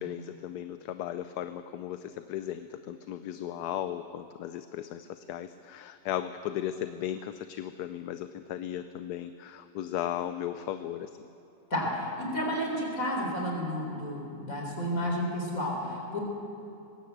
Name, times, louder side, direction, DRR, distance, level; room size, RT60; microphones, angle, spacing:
voice 1, 0.0-11.1, left 11 dB, 80° left, 10 dB, 1.2 m, -36 dB
voice 2, 11.7-16.2, equal, 55° left, 0 dB, 4.4 m, -31 dB
20.0 x 16.5 x 8.0 m, 2.7 s
omnidirectional pair, 1.7 m